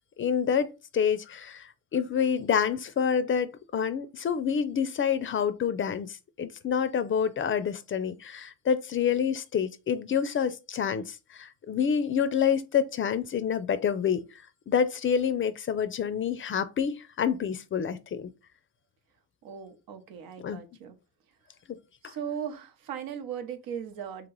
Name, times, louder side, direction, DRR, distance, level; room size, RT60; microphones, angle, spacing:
voice 1, 0.2-14.2 14.7-18.3 20.4-20.6 21.7-21.8 22.0-22.1, left 7 dB, 35° left, 0.4 m, -28 dB
voice 2, 19.4-21.0 22.0-24.3, right 8 dB, 85° right, 0.9 m, -38 dB
3.0 x 2.9 x 3.9 m
cardioid pair, 115°, 35 cm